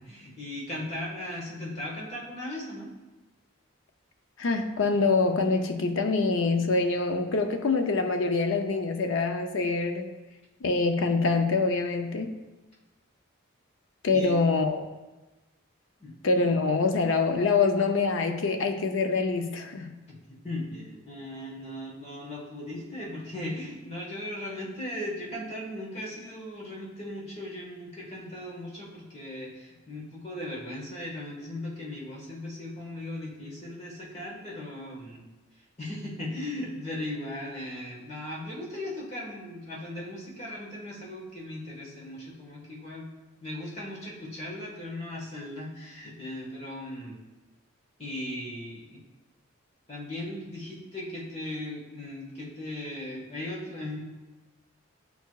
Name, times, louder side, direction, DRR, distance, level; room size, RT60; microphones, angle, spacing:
voice 1, 0.0-2.9 14.1-14.4 16.0-16.1 20.1-20.2 20.4-35.2 35.8-43.1 43.4-47.2 48.0-49.0 49.9-54.0, left 1 dB, 30° left, -4 dB, 1.3 m, -38 dB
voice 2, 4.4-10.2 10.6-12.3 14.0-14.9 16.2-19.9, left 3 dB, 65° left, 6 dB, 0.5 m, -25 dB
9.0 x 4.6 x 2.3 m, 1.1 s
head